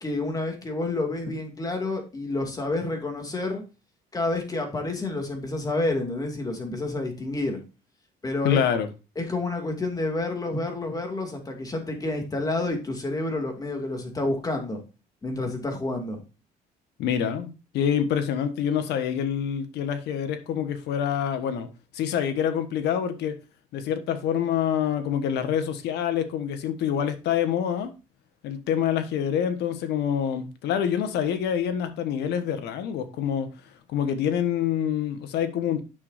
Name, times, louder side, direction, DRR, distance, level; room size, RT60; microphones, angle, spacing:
voice 1, 0.0-3.6 4.1-7.6 8.2-8.6 9.2-14.8 15.2-16.2, left 2 dB, 20° left, 2.4 m, -29 dB
voice 2, 8.4-8.9 17.0-17.5 17.7-21.7 21.9-23.3 23.7-27.9 28.4-33.5 33.9-35.8, left 8 dB, 80° left, 1.3 m, -26 dB
9.4 x 6.5 x 2.6 m
cardioid pair, 110°, 17 cm